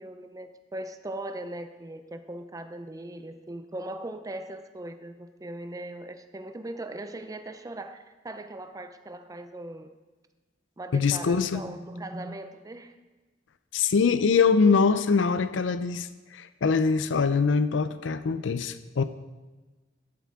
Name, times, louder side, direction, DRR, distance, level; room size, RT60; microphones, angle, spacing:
voice 1, 0.0-9.9 10.8-12.9, right 1 dB, 20° right, 8 dB, 0.5 m, -39 dB
voice 2, 10.9-11.6 13.7-19.0, left 5 dB, 80° left, 13 dB, 0.5 m, -23 dB
12.0 x 7.3 x 3.6 m, 1.3 s
head